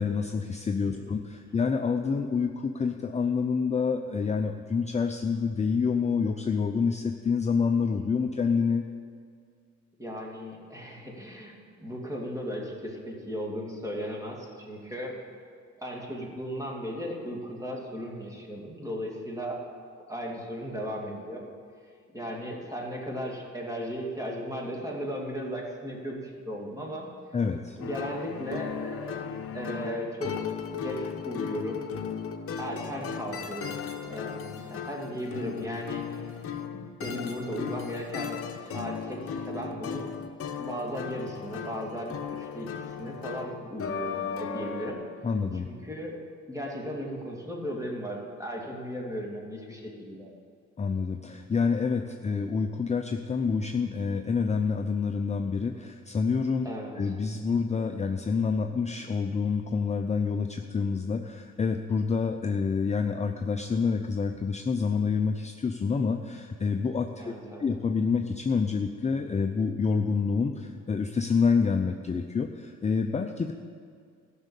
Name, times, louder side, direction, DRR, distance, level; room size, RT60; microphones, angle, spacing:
voice 1, 0.0-8.8 27.3-27.8 45.2-45.7 50.8-56.7 57.0-67.3 67.6-73.5, left 5 dB, 25° left, 5 dB, 0.6 m, -27 dB
voice 2, 10.0-15.2 15.8-19.6 20.1-21.5 22.1-27.1 27.8-29.3 29.5-31.9 32.6-36.3 36.7-40.1 40.6-45.0 45.6-46.2 46.5-50.3 56.6-57.1 67.2-67.7, equal, 10° right, -1 dB, 2.6 m, -36 dB
sound 1, 27.8-44.9, left 7 dB, 50° left, 1.0 m, -36 dB
13.5 x 6.4 x 8.3 m, 2.1 s
cardioid pair, 90°, 30 cm